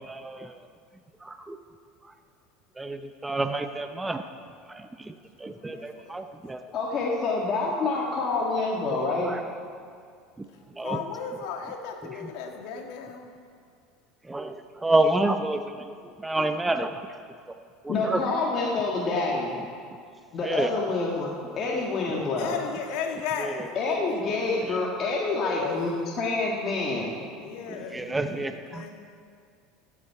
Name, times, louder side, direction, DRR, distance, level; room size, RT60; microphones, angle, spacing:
voice 1, 0.1-0.5 1.2-1.6 2.8-4.2 4.7-5.1 5.4-6.6 9.2-9.4 10.8-11.0 14.3-15.9 16.2-16.9 17.8-18.2 20.4-20.7 27.7-28.8, right 2 dB, 10° right, 7 dB, 0.6 m, -28 dB
voice 2, 5.4-6.3 10.8-13.3 22.4-24.2 25.5-25.9 27.4-28.4 28.7-28.9, left 6 dB, 70° left, 3 dB, 1.6 m, -35 dB
voice 3, 6.7-9.3 17.9-19.6 20.3-21.3 21.6-22.5 23.8-25.9 26.2-27.2, left 3 dB, 40° left, -3 dB, 1.7 m, -27 dB
14.5 x 8.6 x 4.8 m, 2.2 s
supercardioid pair, 110°, 0 cm